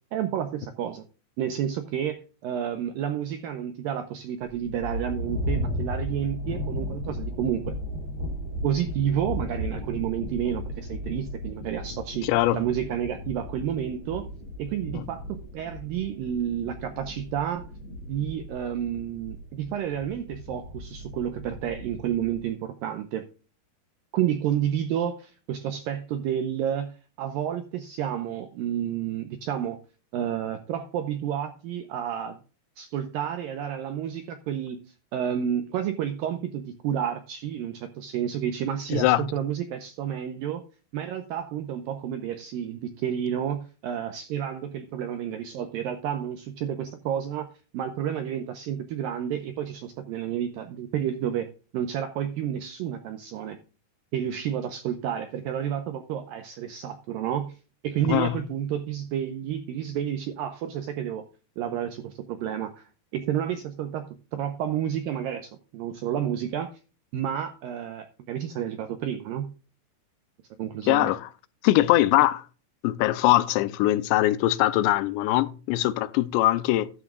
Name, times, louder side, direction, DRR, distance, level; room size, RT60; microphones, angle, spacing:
voice 1, 0.1-1.0 1.4-7.7 8.6-12.3 12.5-14.3 14.6-17.6 18.1-23.2 24.1-29.8 30.1-32.4 32.8-34.8 35.1-40.6 40.9-47.5 47.7-51.5 51.7-53.6 54.1-57.6 57.8-61.2 61.6-66.7 67.1-69.5 70.6-71.1, right 9 dB, 85° right, 2.0 m, -30 dB
sound 1, 4.5-22.5, left 1 dB, 35° right, 4.4 m, -35 dB
voice 2, 12.2-12.6 14.9-15.0 38.9-39.3 58.1-58.4 70.9-71.3 71.6-72.4 72.8-76.9, left 15 dB, 85° left, 2.8 m, -22 dB
13.0 x 11.0 x 2.4 m
omnidirectional pair, 5.1 m